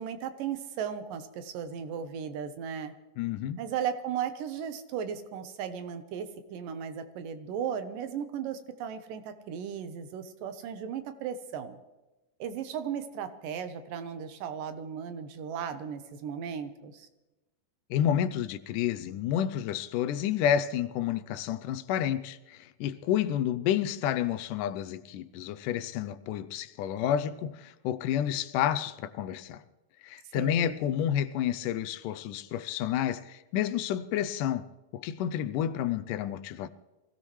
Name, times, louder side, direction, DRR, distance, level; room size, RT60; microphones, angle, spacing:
voice 1, 0.0-2.9 3.6-11.8 12.4-17.1 30.3-30.8, right 8 dB, 90° right, 2.7 m, -36 dB
voice 2, 3.2-3.6 17.9-29.6 30.0-34.7 34.9-36.7, left 10 dB, 80° left, 2.2 m, -30 dB
25.0 x 16.5 x 3.2 m
omnidirectional pair, 3.8 m